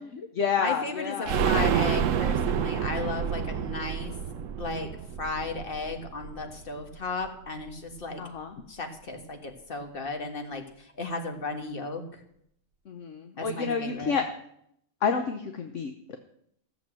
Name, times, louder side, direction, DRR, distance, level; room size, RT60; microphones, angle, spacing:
voice 1, 0.0-1.7 8.2-8.6 12.9-14.2 15.0-16.2, left 6 dB, 65° left, 6 dB, 1.2 m, -30 dB
voice 2, 0.6-4.1 4.6-4.9 5.2-8.2 8.7-10.6 11.0-12.0 13.4-14.2, left 3 dB, 40° left, 4 dB, 1.8 m, -34 dB
sound 1, 1.3-6.9 7.2-7.3 7.6-7.7, right 8 dB, 70° right, 1.0 m, -28 dB
15.0 x 7.1 x 7.5 m, 0.73 s
omnidirectional pair, 1.4 m